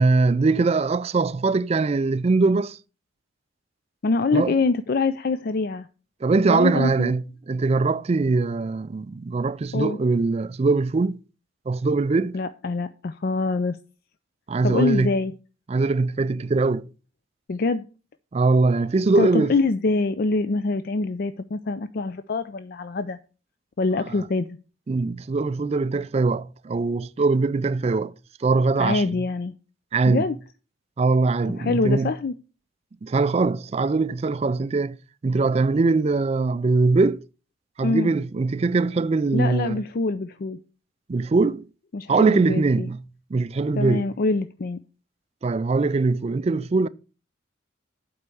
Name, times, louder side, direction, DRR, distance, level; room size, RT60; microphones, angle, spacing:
voice 1, 0.0-2.8 4.3-4.6 6.2-11.2 11.7-12.4 14.5-15.1 15.7-16.9 18.3-19.5 24.1-24.2 24.9-28.1 28.4-29.2 29.9-30.3 31.0-32.1 33.0-35.0 35.2-37.2 37.8-39.8 41.1-41.7 42.1-43.0 43.3-44.1 45.4-46.9, right 3 dB, 30° right, 0.3 m, -22 dB
voice 2, 4.0-5.9 6.5-7.1 9.7-10.0 12.3-13.8 14.6-15.3 17.5-17.8 19.2-23.2 23.8-24.6 28.8-29.5 30.1-30.4 31.6-32.3 37.8-38.1 39.3-40.6 41.9-42.9 43.8-44.8, left 3 dB, 50° left, 0.4 m, -25 dB
8.3 x 4.7 x 6.9 m
head